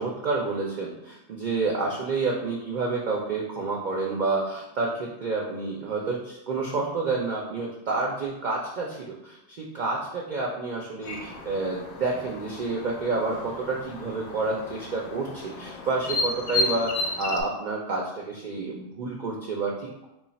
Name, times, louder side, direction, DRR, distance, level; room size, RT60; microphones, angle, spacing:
voice 1, 0.0-20.1, right 3 dB, 55° right, -2 dB, 0.5 m, -29 dB
sound 1, 11.0-17.4, left 2 dB, 60° left, 0.7 m, -33 dB
3.1 x 2.3 x 4.0 m, 0.89 s
omnidirectional pair, 1.2 m